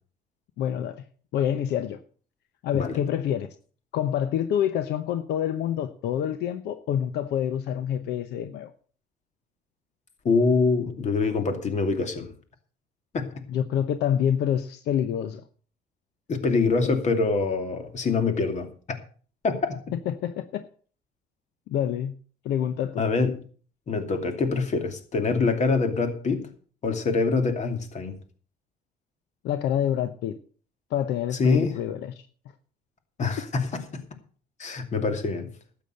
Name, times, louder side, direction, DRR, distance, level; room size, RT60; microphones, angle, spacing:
voice 1, 0.6-1.0 1.3-2.0 2.6-3.5 3.9-8.7 13.5-15.4 16.8-16.9 20.1-20.7 21.7-22.1 22.4-23.0 25.3-25.4 29.4-30.4 30.9-32.1, left 9 dB, 80° left, 0.9 m, -27 dB
voice 2, 10.2-12.3 13.1-13.4 16.3-18.7 19.4-19.8 23.0-23.4 23.9-26.5 26.8-28.2 31.4-31.7 33.2-34.0 34.6-35.5, left 4 dB, 45° left, 2.6 m, -25 dB
12.5 x 8.5 x 6.6 m
cardioid pair, 110°, 17 cm